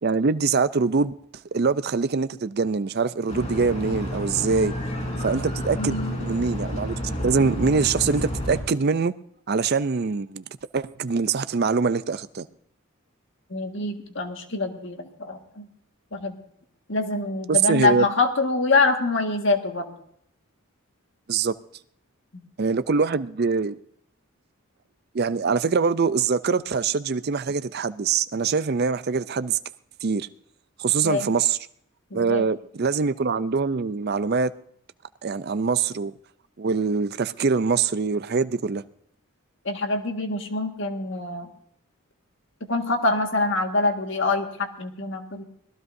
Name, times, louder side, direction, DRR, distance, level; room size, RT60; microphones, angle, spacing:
voice 1, 0.0-1.1 1.5-4.7 5.2-9.1 9.5-10.4 10.7-12.5 17.5-18.0 21.3-21.5 22.6-23.8 25.1-29.6 30.0-30.3 30.8-31.6 32.1-34.5 35.2-36.1 36.6-38.8, right 5 dB, 45° right, 0.5 m, -23 dB
sound 1, 3.3-8.6, equal, 30° left, 3.9 m, -30 dB
voice 2, 5.8-6.1 13.5-15.7 16.1-16.4 16.9-19.9 31.0-31.3 32.1-32.4 39.7-41.5 42.7-45.4, left 3 dB, 55° left, 1.8 m, -25 dB
24.5 x 18.0 x 2.7 m
head